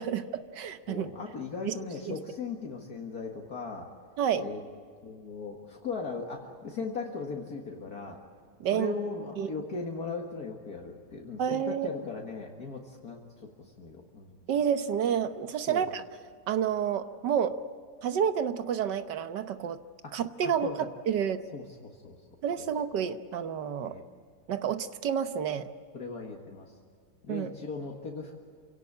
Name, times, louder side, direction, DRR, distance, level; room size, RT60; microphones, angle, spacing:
voice 1, 0.0-1.1 1.7-1.8 2.1-2.2 4.2-4.5 8.6-8.9 9.4-9.5 11.4-11.9 14.5-16.0 16.5-17.6 18.0-19.8 20.1-20.7 21.1-21.4 22.4-24.0 24.5-25.7 27.3-27.5, right 8 dB, 80° right, 10 dB, 1.7 m, -29 dB
voice 2, 0.9-3.9 4.4-4.6 5.0-8.2 8.7-14.4 15.7-15.9 20.0-20.1 20.4-20.8 21.5-22.2 23.8-24.1 25.9-26.7 27.2-28.4, left 4 dB, 60° left, 0 dB, 2.2 m, -38 dB
27.5 x 17.5 x 8.7 m, 2.1 s
omnidirectional pair, 1.8 m